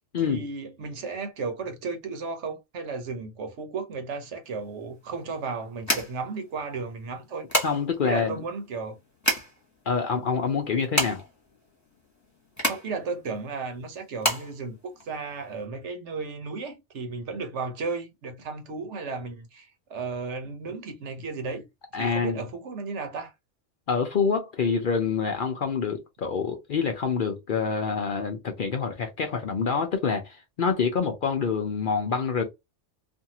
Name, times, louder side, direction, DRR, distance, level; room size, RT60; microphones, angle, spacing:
voice 1, 0.2-7.5 8.0-9.0 12.6-21.7 22.0-23.3, right 4 dB, 70° right, 1.1 m, -34 dB
sound 1, 4.4-15.6, equal, 15° left, 1.0 m, -31 dB
voice 2, 7.6-8.4 9.9-11.2 21.9-22.4 23.9-32.4, left 5 dB, 55° left, 0.6 m, -26 dB
2.6 x 2.5 x 2.8 m
omnidirectional pair, 1.3 m